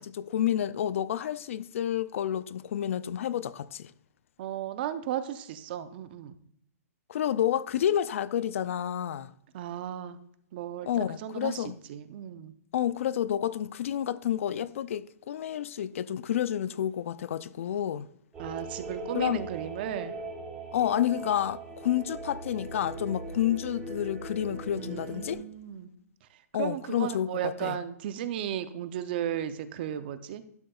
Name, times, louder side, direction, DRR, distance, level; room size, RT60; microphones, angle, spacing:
voice 1, 0.0-3.9 7.1-9.3 10.9-11.8 12.7-18.1 19.1-19.4 20.7-25.4 26.5-27.8, left 10 dB, 55° left, 0.4 m, -29 dB
voice 2, 4.4-6.4 9.5-10.2 10.5-12.5 18.4-20.2 24.7-25.9 26.6-30.4, right 10 dB, 40° right, 0.6 m, -35 dB
sound 1, 18.3-25.3, right 2 dB, 10° right, 3.2 m, -40 dB
11.5 x 6.5 x 2.3 m
hypercardioid pair, 160°, 8 cm